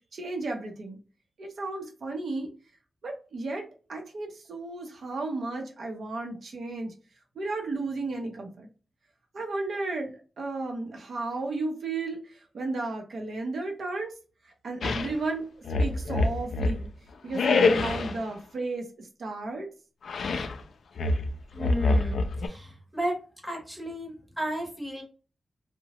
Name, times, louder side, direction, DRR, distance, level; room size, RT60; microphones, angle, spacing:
voice 1, 0.1-1.0 1.4-2.5 3.0-3.6 3.9-6.9 7.4-8.7 9.3-14.1 14.6-15.5 15.8-16.9 17.2-19.7, right 3 dB, 60° right, 2 dB, 0.6 m, -33 dB
sound 1, 14.8-15.1 15.6-16.9 17.3-18.2 20.0-20.6 21.0-22.5, left 3 dB, 75° left, 0.3 m, -25 dB
voice 2, 21.5-23.2 23.4-25.0, right 1 dB, ahead, 1 dB, 0.8 m, -34 dB
2.8 x 2.0 x 2.8 m, 0.35 s
wide cardioid pair, 170°, 0 cm